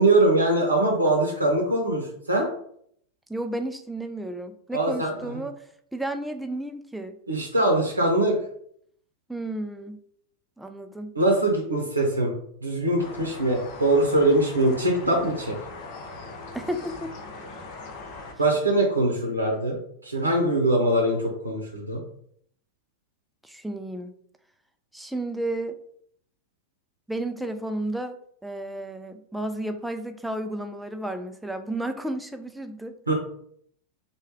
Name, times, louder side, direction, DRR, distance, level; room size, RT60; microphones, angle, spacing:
voice 1, 0.0-2.5 4.7-5.4 7.3-8.4 11.1-12.3 12.6-15.6 18.4-19.8 20.0-22.0 33.1-33.2, right 1 dB, 80° right, -1 dB, 0.7 m, -22 dB
voice 2, 3.3-7.2 9.3-10.0 10.6-11.2 16.5-17.1 23.4-24.1 24.9-25.8 27.1-33.1, right 1 dB, 5° right, 7 dB, 0.3 m, -32 dB
sound 1, 13.0-18.3, left 3 dB, 45° left, 0.6 m, -40 dB
3.2 x 2.2 x 3.5 m, 0.66 s
figure-of-eight pair, 90°, 0 cm